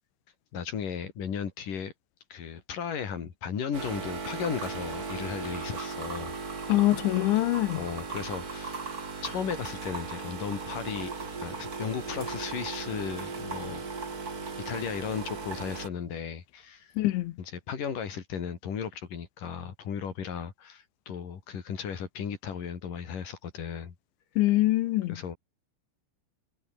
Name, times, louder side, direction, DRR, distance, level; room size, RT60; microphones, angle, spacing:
voice 1, 0.5-1.9 2.3-6.3 6.6-6.7 7.8-8.8 9.2-11.1 11.4-13.9 14.7-16.9 17.4-23.9 25.1-25.4, left 7 dB, 50° left, 4.3 m, -35 dB
coffee machine, 3.7-15.9, right 4 dB, 30° right, 2.1 m, -37 dB
voice 2, 6.7-7.8 17.0-17.3 24.4-25.2, left 16 dB, 85° left, 3.4 m, -24 dB
omnidirectional pair, 5.2 m